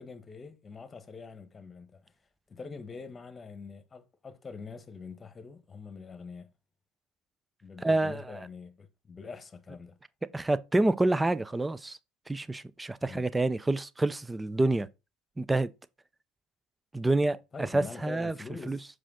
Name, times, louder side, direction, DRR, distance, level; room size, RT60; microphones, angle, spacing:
voice 1, 0.0-2.1 2.5-6.5 7.6-10.0 13.0-13.3 17.5-18.9, left 4 dB, 25° left, 1.3 m, -44 dB
voice 2, 7.8-8.2 10.3-12.0 12.3-14.9 15.4-15.7 16.9-17.4 17.7-18.3 18.7-18.8, right 2 dB, 15° right, 0.6 m, -27 dB
6.4 x 5.0 x 3.6 m
hypercardioid pair, 75°, 0 cm